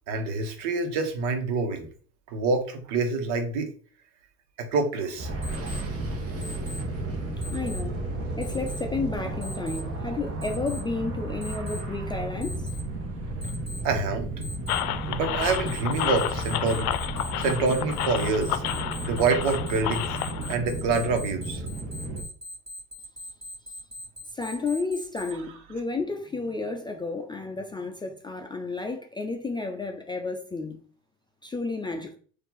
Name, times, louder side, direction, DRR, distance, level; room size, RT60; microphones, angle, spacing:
voice 1, 0.1-1.9 2.3-3.7 4.6-5.3 13.8-14.3 15.1-16.9 17.4-18.6 19.0-20.2 20.5-21.6, right 4 dB, 65° right, 1.3 m, -26 dB
sound 1, 5.2-22.2, right 2 dB, 35° right, 1.3 m, -33 dB
Alarm, 5.4-5.8 6.4-6.8 7.4-7.8 8.4-8.8 9.4-9.8 10.4-10.8 11.4-11.8 12.4-12.8 13.4-13.8 14.4-14.8 15.4-25.3, left 1 dB, 15° right, 2.2 m, -41 dB
voice 2, 7.5-8.0 8.4-12.7 24.3-30.8 31.4-32.2, left 3 dB, 10° left, 0.5 m, -32 dB
sound 2, 14.7-20.5, left 12 dB, 85° left, 0.6 m, -31 dB
4.4 x 2.8 x 3.9 m
hypercardioid pair, 90°, 43 cm